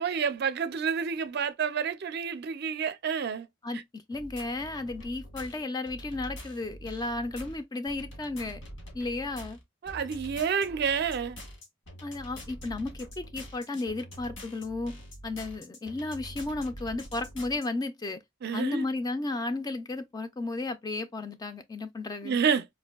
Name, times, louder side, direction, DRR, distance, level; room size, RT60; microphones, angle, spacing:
voice 1, 0.0-3.5 3.7-3.8 9.8-11.4 18.4-18.8 22.2-22.7, right 6 dB, 55° right, 0.4 m, -29 dB
voice 2, 3.6-8.6 8.9-9.6 12.0-15.0 15.2-18.2 18.5-22.4, left 2 dB, 20° left, 0.3 m, -34 dB
sound 1, 4.1-17.7, equal, 85° left, 1.4 m, -45 dB
4.2 x 2.6 x 2.3 m
head